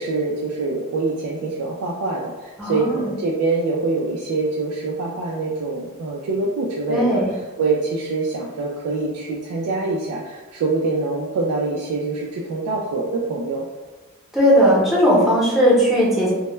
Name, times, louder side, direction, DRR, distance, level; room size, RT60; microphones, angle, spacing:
voice 1, 0.0-7.2 7.6-13.7, right 3 dB, 90° right, -1 dB, 0.3 m, -24 dB
voice 2, 2.6-3.1 6.9-7.3 14.3-16.3, equal, ahead, -7 dB, 0.7 m, -17 dB
2.1 x 2.0 x 3.0 m, 1.2 s
head